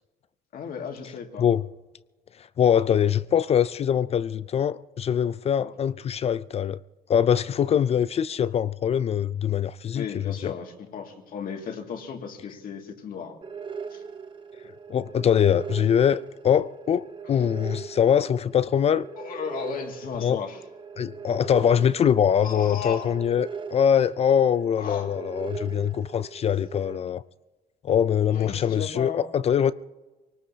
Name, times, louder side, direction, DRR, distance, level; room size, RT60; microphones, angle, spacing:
voice 1, 0.5-1.5 5.6-5.7 9.9-13.4 13.9-14.0 17.2-17.5 19.2-20.6 22.4-23.2 24.7-25.1 28.3-29.2, left 6 dB, 55° left, 2.2 m, -35 dB
voice 2, 2.6-6.8 7.1-10.5 14.9-19.1 20.2-20.4 21.0-27.2 27.8-29.7, left 8 dB, 40° left, 0.4 m, -23 dB
sound 1, 13.4-27.0, right 6 dB, 30° right, 0.7 m, -40 dB
24.0 x 18.5 x 2.8 m
cardioid pair, 110°, 17 cm